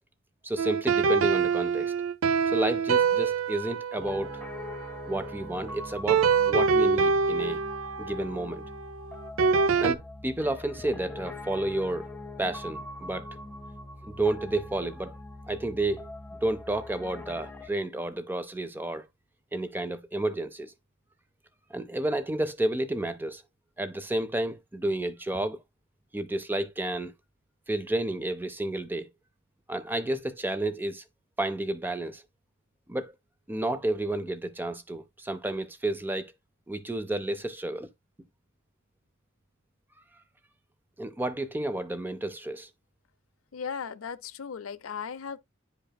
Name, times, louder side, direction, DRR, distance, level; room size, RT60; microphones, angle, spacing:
voice 1, 0.4-1.9 2.5-4.3 5.1-7.6 8.0-8.6 9.8-12.1 12.4-13.4 14.0-15.1 15.5-16.1 16.4-19.1 19.5-20.7 21.7-23.4 23.8-25.6 26.1-27.1 27.7-29.1 29.7-31.0 31.4-32.2 32.9-33.1 33.5-36.3 36.7-37.9 41.0-42.7, right 1 dB, 10° right, 0.5 m, -31 dB
sound 1, 0.6-5.4 6.1-9.9, right 5 dB, 75° right, 0.6 m, -26 dB
Piano, 4.0-17.7, left 2 dB, 5° left, 0.9 m, -42 dB
voice 2, 43.5-45.4, left 6 dB, 75° left, 0.5 m, -36 dB
9.9 x 5.1 x 2.2 m
head